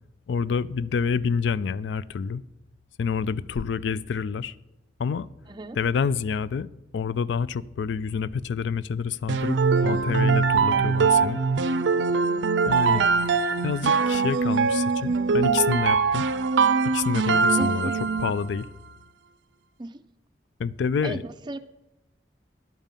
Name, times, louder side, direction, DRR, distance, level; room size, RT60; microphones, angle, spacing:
voice 1, 0.3-2.4 3.0-4.5 5.0-5.3 5.8-6.7 6.9-11.4 12.7-13.0 13.6-16.2 16.9-17.9 18.2-18.7 20.6-21.2, left 6 dB, 80° left, 18 dB, 0.3 m, -28 dB
voice 2, 5.5-5.8 12.9-13.2 17.6-18.0 19.8-20.0 21.0-21.6, right 1 dB, 25° right, 10 dB, 0.4 m, -35 dB
sound 1, 9.3-18.5, right 5 dB, 90° right, 0.5 m, -22 dB
10.5 x 5.3 x 7.3 m, 0.95 s
head